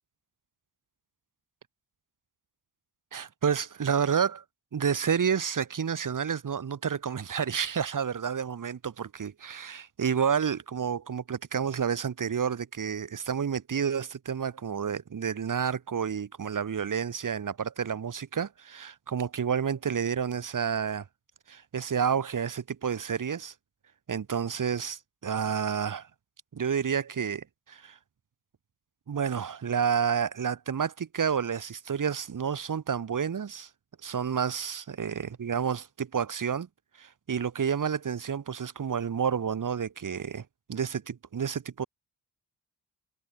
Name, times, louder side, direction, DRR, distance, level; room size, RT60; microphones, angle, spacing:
voice 1, 3.1-4.4 4.7-21.1 21.5-23.5 24.1-26.1 26.5-28.0 29.1-33.7 34.0-36.7 37.0-41.8, right 7 dB, 50° right, 1.4 m, -30 dB
cardioid pair, 50°, 40 cm